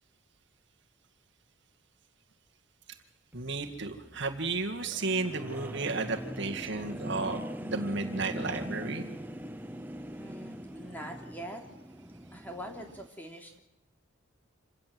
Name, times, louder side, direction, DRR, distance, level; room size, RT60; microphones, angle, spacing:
sound 1, 3.3-13.1, equal, 10° right, 0.8 m, -42 dB
voice 1, 3.3-9.1, right 3 dB, 55° right, 4 dB, 2.0 m, -33 dB
voice 2, 10.1-11.6 12.3-13.6, equal, 10° left, 2 dB, 3.3 m, -43 dB
27.5 x 17.5 x 7.8 m, 0.94 s
head